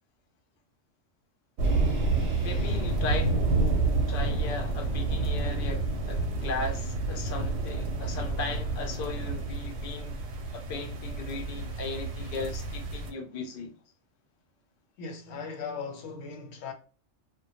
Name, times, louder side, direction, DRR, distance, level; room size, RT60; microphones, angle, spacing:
sound 1, 1.6-6.7, left 1 dB, ahead, 1.0 m, -49 dB
sound 2, 1.6-13.1, right 3 dB, 65° right, 0.8 m, -29 dB
voice 1, 2.4-3.5 4.1-10.2 10.5-13.7, left 3 dB, 55° left, 0.6 m, -37 dB
voice 2, 15.0-16.7, left 5 dB, 85° left, 1.0 m, -38 dB
2.1 x 2.1 x 2.8 m
omnidirectional pair, 1.3 m